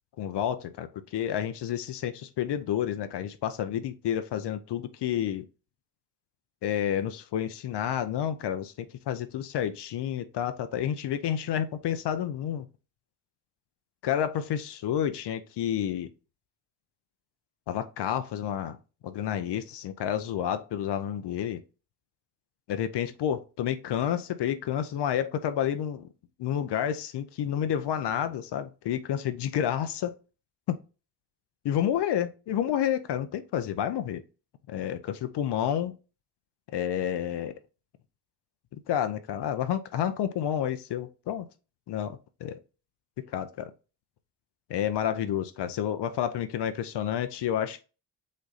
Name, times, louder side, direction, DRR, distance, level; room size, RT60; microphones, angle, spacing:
voice 1, 0.2-5.5 6.6-12.7 14.0-16.1 17.7-18.8 19.0-21.6 22.7-26.1 26.4-30.1 30.7-30.8 31.6-34.2 34.7-35.9 36.7-37.5 38.9-41.5 41.9-42.6 43.3-43.7 44.7-47.8, left 10 dB, 55° left, 0.6 m, -30 dB
5.2 x 2.6 x 4.0 m
hypercardioid pair, 50°, 50 cm